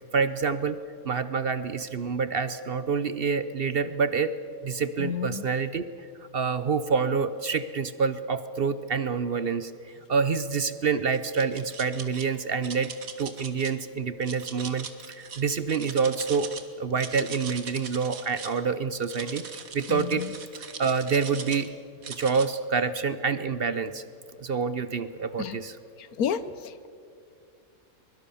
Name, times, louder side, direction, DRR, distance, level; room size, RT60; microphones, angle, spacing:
voice 1, 0.1-0.8 1.0-4.3 4.6-5.9 6.3-9.7 10.1-12.9 13.2-16.5 16.8-19.4 19.7-20.2 20.6-21.7 22.1-24.0 24.4-25.8, right 5 dB, 50° right, 13 dB, 0.9 m, -27 dB
voice 2, 5.0-5.4 19.9-20.3 25.4-25.6 26.0-26.9, left 7 dB, 85° left, 15 dB, 1.4 m, -31 dB
sound 1, 11.1-12.2 12.6-13.7 14.2-16.6 16.9-18.6 19.0-21.7 22.0-22.5, right 6 dB, 70° right, 1.9 m, -40 dB
23.0 x 22.5 x 7.1 m, 2.4 s
omnidirectional pair, 1.5 m